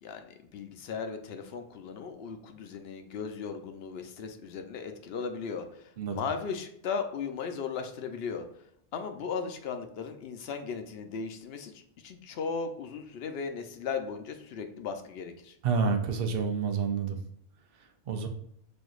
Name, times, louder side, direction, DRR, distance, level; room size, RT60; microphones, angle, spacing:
voice 1, 0.0-8.4 8.9-15.6, left 5 dB, 75° left, 6 dB, 0.8 m, -37 dB
voice 2, 15.6-17.2 18.1-18.3, right 5 dB, 65° right, 6 dB, 0.8 m, -28 dB
6.2 x 2.6 x 2.3 m, 0.69 s
omnidirectional pair, 1.1 m